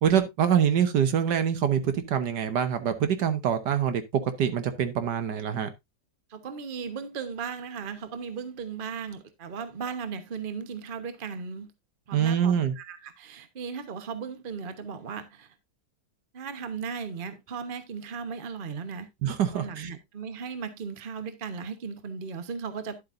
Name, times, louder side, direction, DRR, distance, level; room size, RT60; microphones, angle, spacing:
voice 1, 0.0-5.7 12.1-12.7 19.2-19.9, right 8 dB, 75° right, 1.6 m, -25 dB
voice 2, 6.3-11.7 12.1-15.5 16.3-19.1 19.5-23.0, right 6 dB, 35° right, 1.1 m, -36 dB
11.0 x 7.9 x 2.5 m
omnidirectional pair, 1.8 m